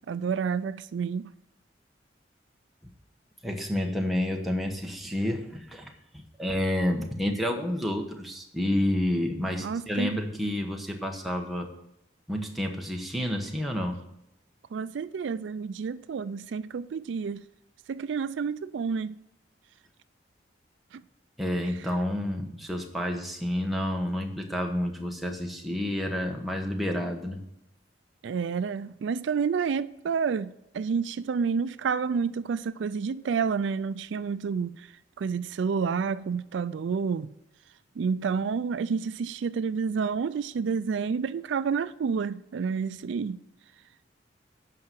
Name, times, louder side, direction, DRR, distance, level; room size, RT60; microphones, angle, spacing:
voice 1, 0.1-1.3 9.6-10.2 14.7-17.4 17.9-19.1 20.9-21.0 28.2-34.9 35.2-37.3 38.0-43.4, right 5 dB, 80° right, 0.4 m, -29 dB
voice 2, 3.4-11.7 12.3-14.0 21.4-27.4, left 1 dB, ahead, 1.1 m, -29 dB
8.7 x 5.6 x 7.6 m
head